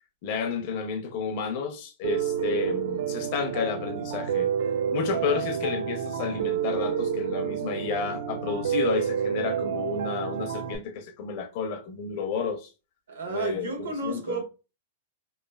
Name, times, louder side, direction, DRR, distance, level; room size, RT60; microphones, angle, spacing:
voice 1, 0.2-4.5 4.9-12.7 13.3-14.4, left 6 dB, 35° left, 0.5 m, -31 dB
Piano, 2.0-10.8, right 8 dB, 60° right, 0.3 m, -29 dB
voice 2, 13.1-14.4, right 2 dB, 90° right, 1.2 m, -31 dB
3.0 x 2.1 x 2.2 m
supercardioid pair, 175°, 0 cm